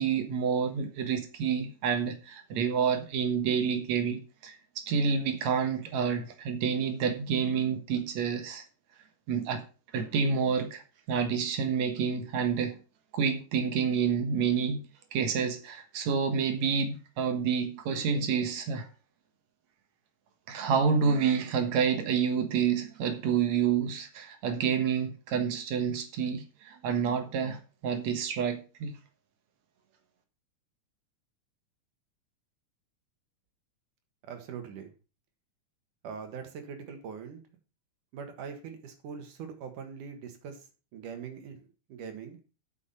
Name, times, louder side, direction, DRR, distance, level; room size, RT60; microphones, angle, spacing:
voice 1, 0.0-8.6 9.3-9.6 9.9-10.8 11.1-12.8 13.1-14.8 15.1-18.9 20.5-28.9, right 6 dB, 65° right, 2.5 m, -28 dB
voice 2, 34.3-34.9 36.0-37.4 38.1-40.6 40.9-41.6 41.9-42.4, right 6 dB, 85° right, 3.2 m, -42 dB
8.6 x 7.2 x 5.5 m
omnidirectional pair, 3.5 m